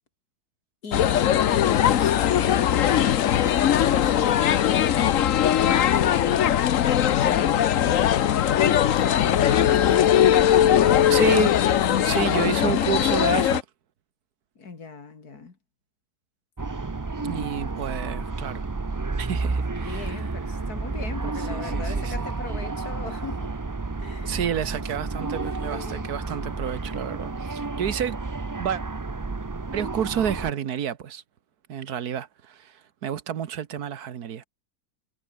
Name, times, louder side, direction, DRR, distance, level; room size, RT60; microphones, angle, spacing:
voice 1, 0.8-6.4 7.2-10.3 10.8-11.5 11.8-12.6 14.6-15.6 17.3-17.4 19.7-23.6 24.0-24.4 25.7-26.2, left 4 dB, 85° left, 3.3 m, -38 dB
sound 1, 0.9-13.6, left 10 dB, 65° left, 1.2 m, -20 dB
voice 2, 11.1-11.5 12.0-13.6 17.2-18.7 19.2-20.3 21.5-22.2 24.2-28.2 28.6-28.8 29.7-31.2 31.7-34.4, right 9 dB, 80° right, 1.7 m, -30 dB
sound 2, 16.6-30.5, right 3 dB, 30° right, 0.3 m, -31 dB
omnidirectional pair, 1.6 m